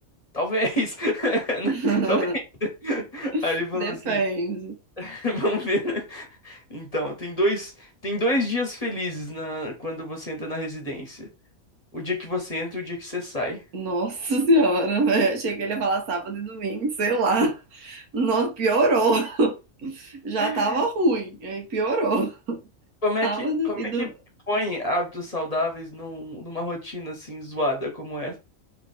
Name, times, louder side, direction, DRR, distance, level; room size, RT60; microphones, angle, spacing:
voice 1, 0.3-2.3 2.6-4.2 5.0-11.3 11.9-13.6 20.4-20.8 23.0-24.1 24.5-28.4, left 1 dB, 30° left, 1.0 m, -28 dB
voice 2, 1.6-2.4 3.3-4.8 13.7-22.6 23.2-24.1, right 2 dB, 85° right, 1.5 m, -24 dB
3.3 x 3.1 x 4.1 m
omnidirectional pair, 1.5 m